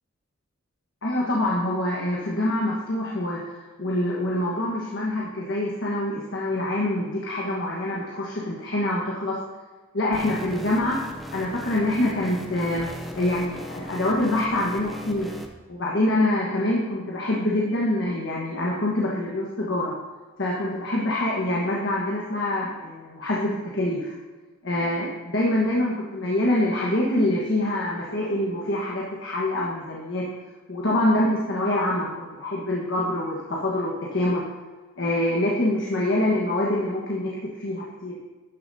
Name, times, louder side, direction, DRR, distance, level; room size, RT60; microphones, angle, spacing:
voice 1, 1.0-3.4 3.8-9.4 9.9-11.0 11.3-15.3 15.7-19.9 20.4-24.1 24.6-30.3 30.7-34.4 35.0-38.2, left 1 dB, 65° left, -4 dB, 1.4 m, -25 dB
sound 1, 10.1-15.5, equal, ahead, 0.6 m, -38 dB
11.5 x 7.1 x 2.8 m, 1.3 s
head